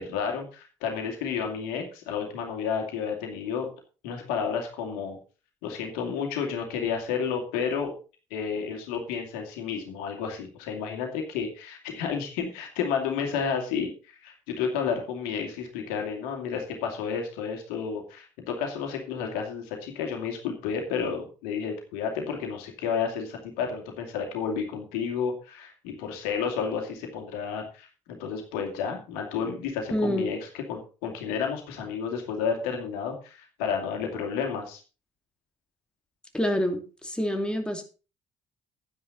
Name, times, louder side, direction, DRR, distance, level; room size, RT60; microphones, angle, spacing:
voice 1, 0.0-3.7 4.0-5.2 5.6-7.9 8.3-27.9 28.2-34.8, left 6 dB, 70° left, 3 dB, 2.5 m, -31 dB
voice 2, 29.9-30.3 36.3-37.8, equal, 5° left, 4 dB, 2.6 m, -27 dB
10.5 x 9.8 x 4.0 m, 0.33 s
figure-of-eight pair, 50°, 16 cm